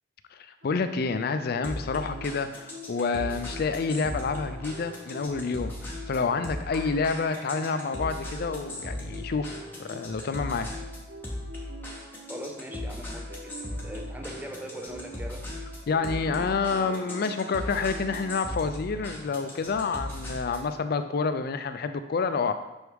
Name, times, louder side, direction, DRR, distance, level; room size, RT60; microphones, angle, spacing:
voice 1, 0.6-9.6 9.8-10.7 15.9-22.5, left 4 dB, 50° left, 9 dB, 0.4 m, -28 dB
sound 1, 0.6-18.7, equal, 65° right, 0.8 m, -45 dB
sound 2, 1.6-20.7, left 1 dB, 10° left, 1.1 m, -38 dB
voice 2, 12.3-15.4, right 1 dB, 10° right, 3 dB, 0.5 m, -41 dB
6.2 x 3.4 x 4.7 m, 1.0 s
head